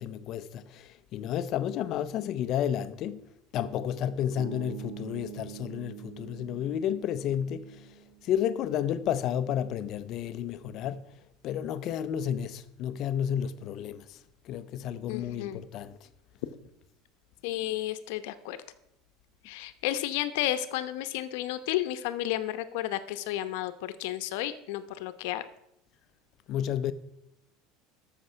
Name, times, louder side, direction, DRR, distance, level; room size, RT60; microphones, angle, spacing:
voice 1, 0.0-3.2 3.5-7.9 8.2-11.1 11.4-14.2 14.4-16.0 26.5-26.9, left 9 dB, 40° left, 0.6 m, -31 dB
sound 1, 4.4-8.5, right 15 dB, 70° right, 0.8 m, -45 dB
voice 2, 15.1-15.6 17.4-18.6 19.4-25.4, left 13 dB, 70° left, 0.9 m, -32 dB
13.0 x 6.7 x 5.6 m
cardioid pair, 165°, 0 cm